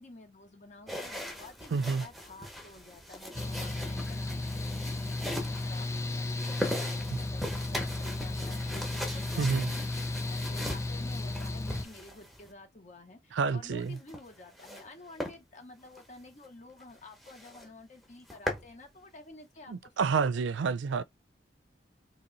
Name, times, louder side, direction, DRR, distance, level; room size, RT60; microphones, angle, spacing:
voice 1, 0.0-20.7, left 2 dB, 40° left, 0.9 m, -51 dB
sound 1, 0.9-12.5 13.8-14.9 15.2-15.4 15.9-16.0 16.4-16.5 16.8-16.9 17.2-17.7 18.0-18.7, equal, ahead, 0.9 m, -40 dB
voice 2, 1.7-2.0 9.4-9.7 13.3-14.0 19.7-21.0, right 5 dB, 80° right, 0.4 m, -29 dB
Mechanical fan, 3.3-11.8, left 2 dB, 15° left, 0.4 m, -34 dB
3.0 x 3.0 x 3.9 m
head